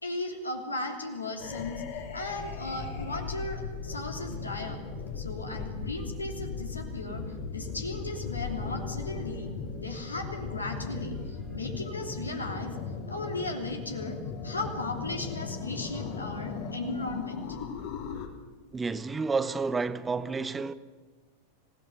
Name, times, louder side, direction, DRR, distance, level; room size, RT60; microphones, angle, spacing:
voice 1, 0.0-1.8 2.1-4.8 5.1-9.5 9.8-12.8 13.1-14.2 14.4-17.6, left 2 dB, 80° left, 3.2 m, -36 dB
sound 1, 1.4-18.3, left 5 dB, 50° left, 2.9 m, -37 dB
voice 2, 18.7-20.7, right 4 dB, 15° right, 0.9 m, -30 dB
26.5 x 17.5 x 7.0 m
figure-of-eight pair, 90°, 0 cm